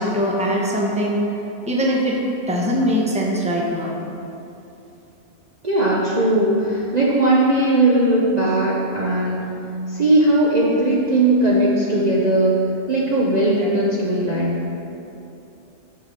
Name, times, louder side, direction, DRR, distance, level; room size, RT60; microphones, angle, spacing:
voice 1, 0.0-1.3 1.7-2.2 2.5-4.0 13.6-13.7, equal, 5° right, -3 dB, 0.9 m, -21 dB
voice 2, 5.6-9.5 9.9-12.6 12.9-14.6, right 1 dB, 40° right, -5 dB, 0.8 m, -18 dB
7.9 x 5.0 x 5.6 m, 2.8 s
omnidirectional pair, 1.3 m